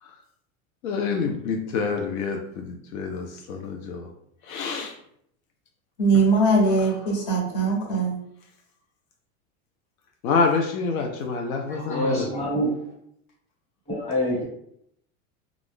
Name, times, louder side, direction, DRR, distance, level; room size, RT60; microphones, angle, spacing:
voice 1, 0.8-4.1 4.4-5.0 6.1-6.2 6.7-7.2 7.6-7.7 10.2-12.3, left 4 dB, 85° left, 2 dB, 0.6 m, -27 dB
voice 2, 6.0-8.1, right 3 dB, 60° left, -2 dB, 1.4 m, -21 dB
voice 3, 11.7-12.7 13.9-14.4, equal, 15° left, -5 dB, 1.2 m, -26 dB
2.4 x 2.3 x 3.5 m, 0.71 s
supercardioid pair, 115°, 41 cm